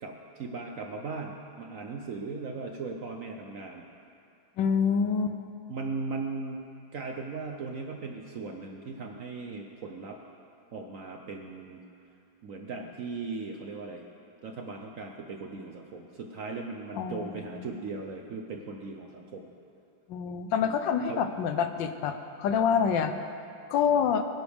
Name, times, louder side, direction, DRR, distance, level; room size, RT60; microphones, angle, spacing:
voice 1, 0.0-3.8 5.7-6.6 6.9-10.2 10.7-11.8 12.4-14.0 14.4-19.5 20.6-20.8 21.1-21.3, right 4 dB, 60° right, 2 dB, 0.9 m, -38 dB
voice 2, 4.6-5.4 16.9-17.7 20.1-23.1 23.7-24.2, left 7 dB, 75° left, 8 dB, 1.3 m, -27 dB
21.0 x 10.5 x 3.5 m, 2.5 s
omnidirectional pair, 2.1 m